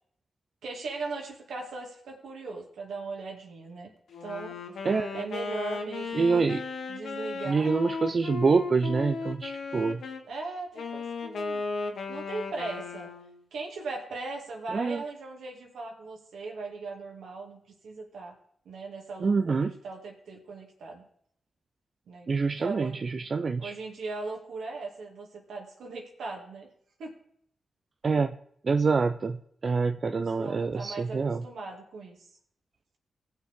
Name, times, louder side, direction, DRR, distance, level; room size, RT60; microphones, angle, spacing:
voice 1, 0.6-3.9 4.2-4.6 5.1-6.4 6.9-7.7 10.3-11.6 12.1-13.1 13.5-18.4 18.6-21.1 22.1-22.3 22.6-23.0 23.6-26.7 27.0-27.1 30.2-32.3, right 3 dB, 80° right, 0 dB, 2.4 m, -38 dB
Wind instrument woodwind instrument, 4.1-10.2 10.7-13.4, left 4 dB, 75° left, 1.1 m, -36 dB
voice 2, 4.8-5.2 6.1-6.6 7.5-10.0 14.7-15.0 19.2-19.7 22.3-23.7 28.0-28.3 28.6-31.4, right 4 dB, 55° right, 7 dB, 0.5 m, -26 dB
17.5 x 6.5 x 3.7 m, 0.67 s
supercardioid pair, 45°, 0 cm